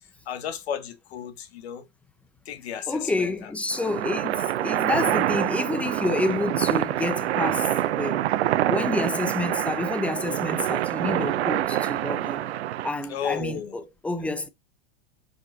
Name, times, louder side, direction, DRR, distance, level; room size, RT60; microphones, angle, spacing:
voice 1, 0.3-1.8 2.5-3.0 13.1-13.7, left 8 dB, 80° left, 1.7 m, -33 dB
voice 2, 2.9-8.3 8.7-12.5 12.8-14.5, left 2 dB, 5° left, 0.7 m, -29 dB
sound 1, 3.7-12.9, right 13 dB, 85° right, 0.8 m, -26 dB
5.3 x 5.3 x 4.0 m
supercardioid pair, 135°, 32 cm